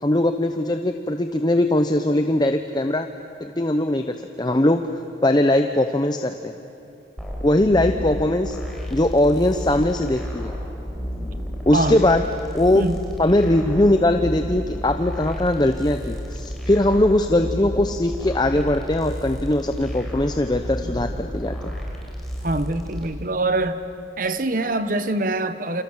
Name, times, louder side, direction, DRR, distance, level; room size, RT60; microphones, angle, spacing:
voice 1, 0.0-3.1 3.4-4.9 5.2-6.5 7.4-8.6 8.9-10.5 11.7-12.2 12.5-12.8 13.2-21.7, left 1 dB, 25° left, 7 dB, 0.8 m, -20 dB
sound 1, 7.2-23.1, equal, ahead, 4.6 m, -31 dB
voice 2, 11.7-12.0 12.7-13.0 22.4-23.8 24.2-25.8, right 2 dB, 50° right, 10 dB, 1.3 m, -24 dB
28.5 x 27.5 x 7.4 m, 2.7 s
head